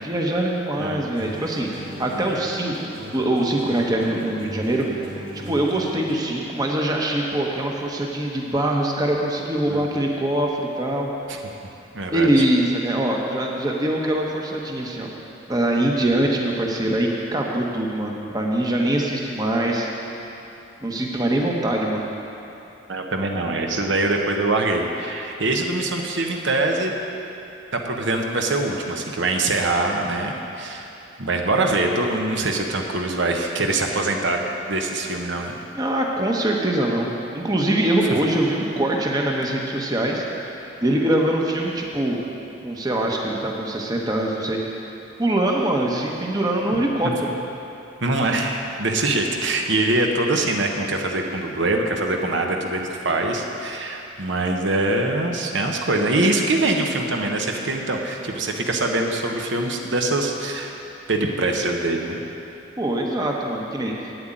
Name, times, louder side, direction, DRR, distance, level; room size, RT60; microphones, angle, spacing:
voice 1, 0.0-5.1 5.5-11.1 12.1-15.1 15.5-19.9 20.8-22.0 35.7-40.2 40.8-42.2 42.6-44.6 45.2-47.3 62.8-64.1, right 1 dB, 20° right, -1 dB, 0.9 m, -23 dB
sound 1, 1.1-6.5, equal, 40° right, 2.4 m, -37 dB
voice 2, 11.9-12.3 22.9-26.9 27.7-30.9 31.2-35.6 48.0-60.7 61.1-62.2, right 2 dB, 70° right, 2 dB, 1.0 m, -23 dB
8.8 x 7.8 x 9.0 m, 2.9 s
head